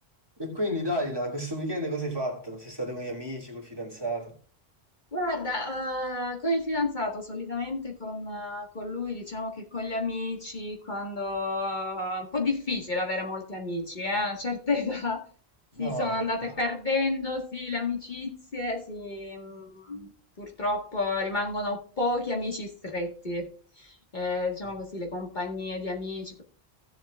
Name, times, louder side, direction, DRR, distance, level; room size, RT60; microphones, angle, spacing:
voice 1, 0.4-4.4 15.7-16.2 24.6-24.7, equal, 25° right, 2.7 m, -32 dB
voice 2, 5.1-15.2 15.8-20.1 20.4-23.5 23.8-26.4, left 2 dB, 50° left, 1.8 m, -31 dB
16.5 x 7.7 x 2.4 m
omnidirectional pair, 1.0 m